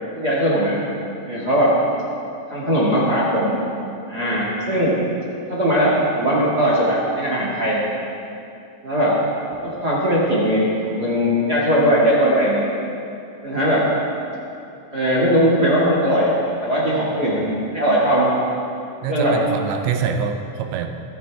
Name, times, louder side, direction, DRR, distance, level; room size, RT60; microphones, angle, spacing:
voice 1, 0.1-0.8 1.2-1.8 2.5-3.6 4.1-4.9 5.5-7.8 8.8-9.2 9.6-12.6 13.4-13.9 14.9-16.3 16.6-18.3 19.1-19.4, equal, 40° right, -6 dB, 1.4 m, -19 dB
voice 2, 19.0-20.9, right 6 dB, 80° right, 5 dB, 3.0 m, -25 dB
25.0 x 9.7 x 3.5 m, 2.6 s
omnidirectional pair, 5.4 m